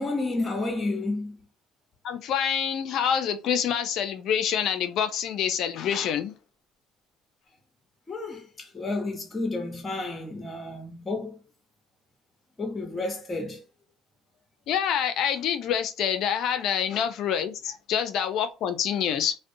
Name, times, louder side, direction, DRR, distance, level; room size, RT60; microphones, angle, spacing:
voice 1, 0.0-1.4 8.1-11.4 12.6-13.6, left 2 dB, 20° left, 0.7 m, -31 dB
voice 2, 2.0-6.3 14.7-19.4, left 8 dB, 65° left, 0.4 m, -26 dB
2.4 x 2.1 x 2.6 m
supercardioid pair, 85°, 0 cm